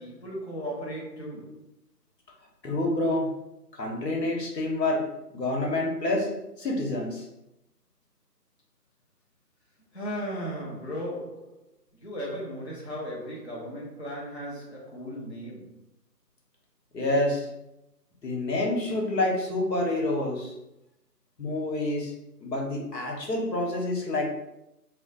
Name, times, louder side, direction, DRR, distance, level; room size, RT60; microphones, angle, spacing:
voice 1, 0.0-1.7 9.9-11.6 11.9-15.7, equal, 45° left, -5 dB, 0.6 m, -36 dB
voice 2, 2.6-3.3 3.7-5.0 5.3-6.3 6.6-7.3 16.9-17.5 18.2-20.5 21.4-22.1 22.4-24.3, left 2 dB, 80° left, 0 dB, 1.0 m, -27 dB
2.5 x 2.1 x 3.8 m, 0.88 s
figure-of-eight pair, 170°, 49 cm